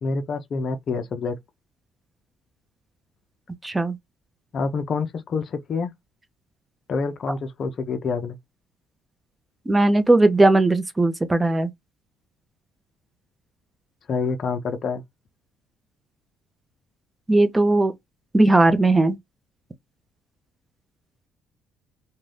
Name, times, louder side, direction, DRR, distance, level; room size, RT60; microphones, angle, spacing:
voice 1, 0.0-1.4 4.5-5.9 6.9-8.4 14.1-15.0, left 4 dB, 45° left, 0.5 m, -27 dB
voice 2, 3.6-4.0 9.7-11.7 17.3-17.9 18.3-19.2, right 2 dB, 15° right, 0.6 m, -18 dB
2.6 x 2.2 x 3.3 m
cardioid pair, 120°, 0 cm